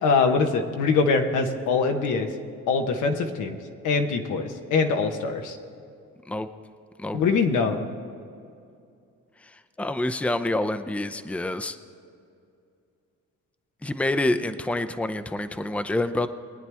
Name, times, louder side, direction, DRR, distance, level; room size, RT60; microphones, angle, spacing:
voice 1, 0.0-2.3 2.7-3.6 3.8-5.6 7.1-7.8, left 4 dB, 90° left, 4 dB, 1.2 m, -23 dB
voice 2, 9.4-11.8 13.8-16.3, left 1 dB, 5° left, 10 dB, 0.6 m, -27 dB
22.5 x 9.5 x 3.5 m, 2.5 s
cardioid pair, 90°, 30 cm